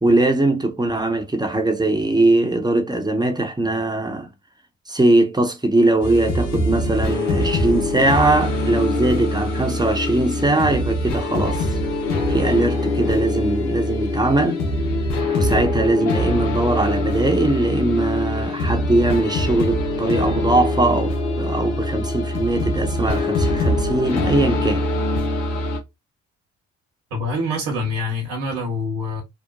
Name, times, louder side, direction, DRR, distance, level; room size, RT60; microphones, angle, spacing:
voice 1, 0.0-4.3 4.9-11.7 12.3-14.6 15.4-24.8, right 2 dB, 10° right, 0.8 m, -20 dB
sound 1, 6.0-25.8, left 1 dB, 90° left, 0.7 m, -23 dB
voice 2, 27.1-29.2, left 1 dB, 70° right, 1.0 m, -25 dB
2.9 x 2.1 x 2.3 m
hypercardioid pair, 45°, 35 cm